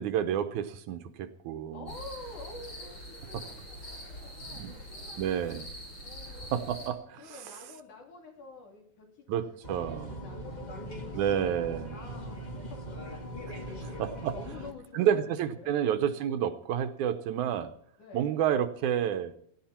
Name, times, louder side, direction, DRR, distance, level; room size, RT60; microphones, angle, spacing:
voice 1, 0.0-1.9 3.3-3.4 4.5-4.7 5.2-5.7 6.5-7.4 9.3-10.2 11.1-12.0 13.8-14.4 14.9-17.7 18.1-19.3, right 9 dB, 75° right, 9 dB, 2.3 m, -30 dB
voice 2, 1.7-5.7 6.0-6.5 7.2-9.1 9.7-11.1 11.4-12.4 12.7-12.8 13.6-15.3 15.6-15.8 16.4-16.5 18.0-18.3, left 3 dB, 75° left, 0 dB, 4.9 m, -48 dB
sound 1, 1.9-6.9, equal, 35° left, 5.5 m, -44 dB
sound 2, 9.6-14.7, equal, 20° left, 1.5 m, -40 dB
17.5 x 15.5 x 4.5 m, 0.67 s
omnidirectional pair, 3.6 m